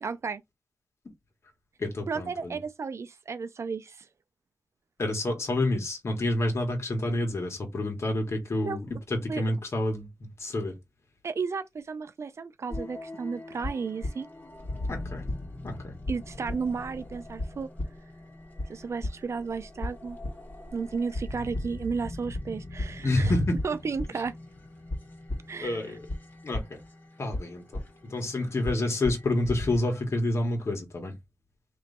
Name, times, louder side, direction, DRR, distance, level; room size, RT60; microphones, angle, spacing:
voice 1, 0.0-0.4 2.1-4.1 8.6-8.8 9.3-9.4 11.2-14.3 16.1-17.7 18.7-20.2 20.7-23.3 23.6-24.3 25.5-26.0, right 5 dB, 65° right, 0.4 m, -33 dB
voice 2, 1.8-2.6 5.0-10.7 14.9-15.2 15.6-15.9 23.0-23.6 25.6-26.0 26.4-26.8 27.2-31.1, left 1 dB, 60° left, 1.6 m, -28 dB
sound 1, 12.7-29.8, left 1 dB, 35° left, 1.9 m, -38 dB
3.1 x 3.1 x 4.1 m
wide cardioid pair, 70°, 5 cm